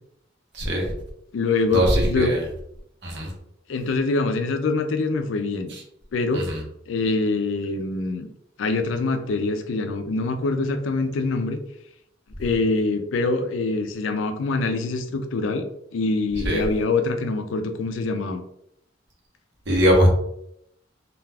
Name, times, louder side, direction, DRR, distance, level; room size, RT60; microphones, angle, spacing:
voice 1, 0.5-0.9 1.7-2.4 3.0-3.3 5.7-5.8 6.3-6.6 16.4-16.6 19.7-20.1, equal, 60° right, -1 dB, 0.8 m, -20 dB
voice 2, 1.3-2.3 3.7-5.7 6.1-6.4 6.9-8.3 8.6-11.6 12.4-18.4, left 3 dB, 70° left, 7 dB, 0.4 m, -24 dB
2.4 x 2.2 x 3.3 m, 0.75 s
head